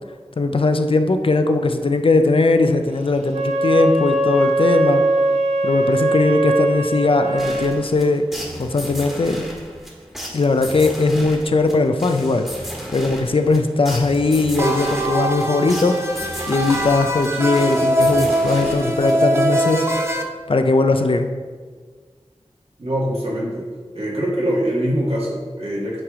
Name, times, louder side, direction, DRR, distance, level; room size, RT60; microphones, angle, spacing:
voice 1, 0.4-5.0 5.6-8.2 8.6-9.4 10.3-16.2 16.5-19.9 20.5-21.3, left 3 dB, 55° left, 7 dB, 0.4 m, -19 dB
Wind instrument woodwind instrument, 3.3-7.7, right 1 dB, 80° right, 0.7 m, -20 dB
sound 1, 7.4-19.5, equal, 5° right, 1.5 m, -34 dB
sound 2, 14.6-20.2, right 1 dB, 25° right, 0.7 m, -22 dB
voice 2, 22.8-23.6 23.9-26.0, equal, 65° right, -5 dB, 1.8 m, -23 dB
8.6 x 3.3 x 3.6 m, 1.5 s
wide cardioid pair, 50°, 11 cm